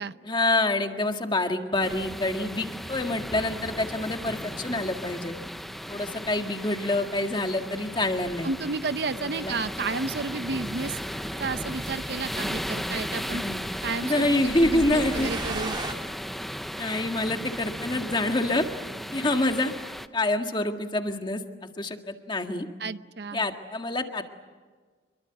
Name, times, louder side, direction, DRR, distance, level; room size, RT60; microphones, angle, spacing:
voice 1, 0.3-5.3 5.9-8.5 9.2-9.5 13.3-13.7 14.0-15.3 16.8-18.7 19.1-19.7 20.1-21.4 21.8-22.7 23.3-24.2, left 2 dB, 25° left, 5 dB, 1.7 m, -27 dB
sound 1, 1.8-20.1, equal, ahead, 0.7 m, -36 dB
voice 2, 8.4-11.0 11.4-13.4 13.8-15.8 22.8-23.5, right 4 dB, 65° right, 13 dB, 0.7 m, -32 dB
sound 2, 9.3-15.9, right 2 dB, 25° right, 2.2 m, -40 dB
26.5 x 23.0 x 8.0 m, 1.4 s
head